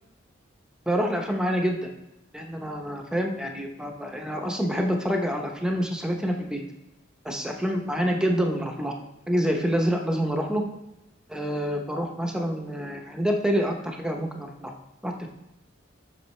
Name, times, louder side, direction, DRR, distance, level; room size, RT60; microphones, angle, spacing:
voice 1, 0.9-1.8 2.3-6.6 7.2-8.9 9.3-10.6 11.3-14.7 15.0-15.3, equal, 5° right, 2 dB, 0.8 m, -27 dB
7.7 x 6.1 x 3.2 m, 0.93 s
head